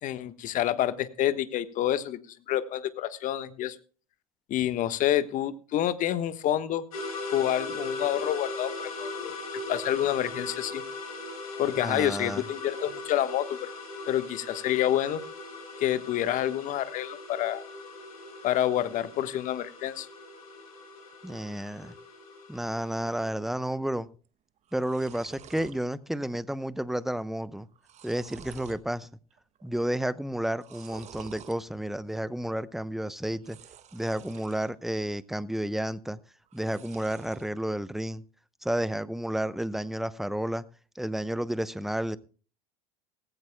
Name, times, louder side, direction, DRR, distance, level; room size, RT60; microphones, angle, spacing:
voice 1, 0.0-2.2 2.5-3.8 4.5-6.8 7.3-9.4 9.7-10.8 11.6-13.7 14.1-15.2 15.8-17.6 18.4-20.1, left 12 dB, 45° left, 1.3 m, -28 dB
sound 1, 6.9-23.3, left 2 dB, 75° left, 5.9 m, -39 dB
voice 2, 11.8-12.4 21.2-21.9 22.5-24.1 24.7-27.7 28.0-29.1 29.6-33.6 33.9-36.2 36.5-38.2 38.6-40.6 41.0-42.2, right 1 dB, ahead, 0.8 m, -31 dB
sound 2, 24.3-24.4 24.6-25.8 26.2-26.7 26.9-27.0 27.6-28.9 29.3-29.8 30.5-31.6 33.3-34.7 35.1-35.7 36.5-37.5, right 9 dB, 40° right, 1.4 m, -49 dB
18.0 x 16.0 x 2.2 m
hypercardioid pair, 85°, 18 cm